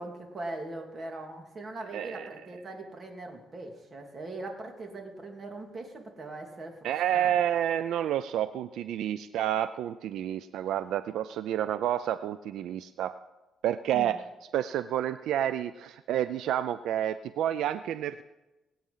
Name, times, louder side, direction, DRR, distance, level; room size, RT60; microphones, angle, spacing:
voice 1, 0.0-7.3 13.9-14.2, right 2 dB, 40° right, 3 dB, 3.0 m, -41 dB
voice 2, 1.9-2.3 6.8-13.1 13.6-14.2 14.5-18.2, right 11 dB, 80° right, 13 dB, 0.4 m, -29 dB
20.0 x 8.7 x 5.6 m, 1.0 s
cardioid pair, 90°, 0 cm